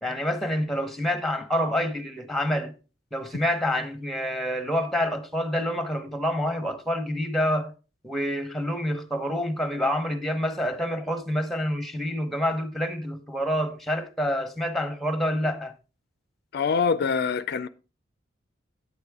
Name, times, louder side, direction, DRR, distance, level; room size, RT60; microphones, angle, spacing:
voice 1, 0.0-2.7 3.1-7.7 8.0-15.7, equal, ahead, 1.0 m, -27 dB
voice 2, 16.5-17.7, left 5 dB, 55° left, 0.4 m, -24 dB
9.6 x 8.2 x 3.6 m
head